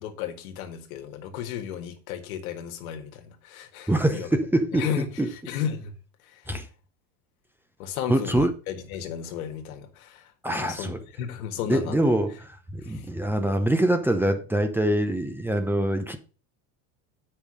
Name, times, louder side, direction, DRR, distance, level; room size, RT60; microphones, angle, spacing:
voice 1, 0.0-4.3 4.7-5.9 6.3-6.4 7.8-12.1 12.8-13.1, left 9 dB, 85° left, 1.7 m, -34 dB
voice 2, 3.9-5.3 6.5-6.7 8.1-8.5 10.4-11.0 11.7-16.2, right 1 dB, 5° right, 0.8 m, -24 dB
8.2 x 5.5 x 5.1 m
supercardioid pair, 125°, 41 cm